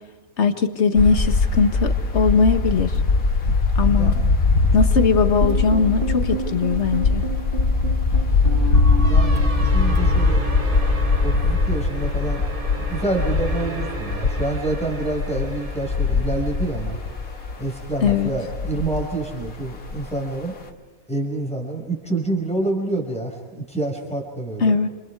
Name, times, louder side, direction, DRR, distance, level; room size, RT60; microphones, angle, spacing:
voice 1, 0.4-3.0 3.8-4.1 4.7-7.2 18.0-18.3 24.6-24.9, left 5 dB, 50° left, 7 dB, 1.9 m, -20 dB
sound 1, 1.0-20.2, left 3 dB, 75° left, 2.3 m, -21 dB
sound 2, 5.4-17.6, right 1 dB, 35° right, 2.5 m, -31 dB
voice 2, 9.1-10.4 11.2-12.4 12.9-17.0 17.6-20.6 21.1-24.8, right 2 dB, 5° left, 0 dB, 5.6 m, -27 dB
28.5 x 28.0 x 4.9 m, 1.2 s
omnidirectional pair, 1.5 m